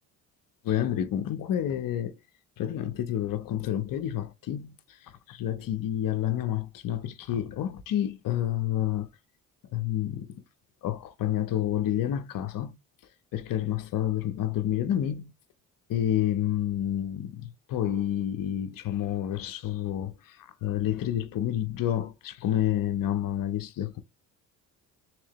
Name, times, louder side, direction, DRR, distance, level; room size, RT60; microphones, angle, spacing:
voice 1, 0.6-2.2 2.6-9.1 9.7-10.4 10.8-12.7 13.3-15.3 15.9-24.0, left 11 dB, 55° left, 0.8 m, -29 dB
3.7 x 3.1 x 2.9 m
cardioid pair, 95°, 39 cm